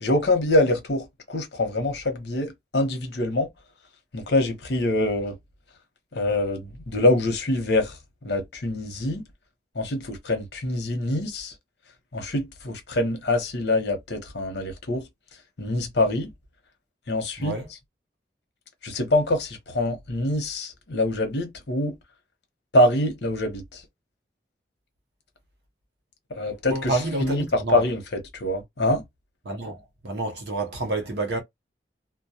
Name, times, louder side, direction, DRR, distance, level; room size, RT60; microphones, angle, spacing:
voice 1, 0.0-3.5 4.1-5.3 6.1-7.9 8.2-9.2 9.7-11.5 12.1-15.0 15.6-16.3 17.1-17.6 18.8-21.9 22.7-23.8 26.3-29.0, left 1 dB, 70° left, 0.9 m, -25 dB
voice 2, 17.4-17.7 26.5-27.8 29.4-31.4, right 2 dB, 65° right, 0.7 m, -29 dB
2.2 x 2.1 x 2.7 m
head